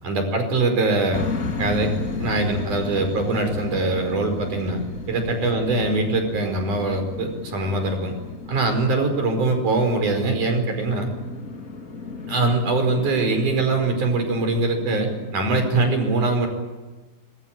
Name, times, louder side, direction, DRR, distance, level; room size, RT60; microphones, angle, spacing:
voice 1, 0.0-1.2 1.6-8.1 8.5-11.1 12.3-16.5, right 3 dB, 85° right, 5 dB, 6.6 m, -22 dB
sound 1, 1.1-15.9, left 4 dB, 30° left, 2.4 m, -34 dB
26.0 x 22.0 x 9.1 m, 1.2 s
omnidirectional pair, 3.5 m